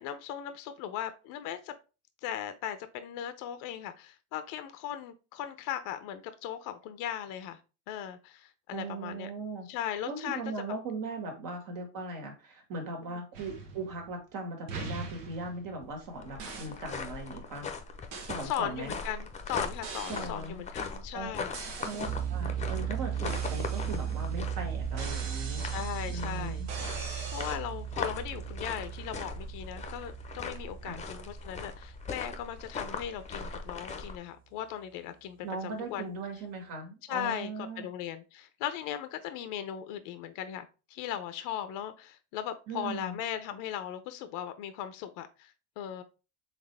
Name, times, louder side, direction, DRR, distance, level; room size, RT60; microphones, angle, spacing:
voice 1, 0.0-1.7 2.2-7.6 7.9-9.3 9.7-10.4 13.0-13.2 18.4-21.5 25.6-27.0 27.3-36.1 37.1-46.0, left 10 dB, 60° left, 10 dB, 0.6 m, -38 dB
voice 2, 8.7-9.7 10.1-17.7 18.2-18.9 20.1-20.6 21.1-21.3 21.8-25.6 26.1-26.7 30.8-31.0 35.4-37.9 42.7-43.2, right 3 dB, 60° right, 3 dB, 1.8 m, -39 dB
sound 1, 13.3-14.3 14.7-16.0 16.4-16.8 18.1-18.4 19.8-20.4 21.5-22.3 23.3-24.4 25.0-27.6, right 4 dB, 85° right, 1.3 m, -42 dB
sound 2, 15.8-34.2, left 4 dB, 20° left, 0.7 m, -40 dB
sound 3, 22.0-32.9, right 9 dB, 25° right, 0.4 m, -37 dB
4.1 x 3.4 x 3.3 m, 0.31 s
supercardioid pair, 105°, 36 cm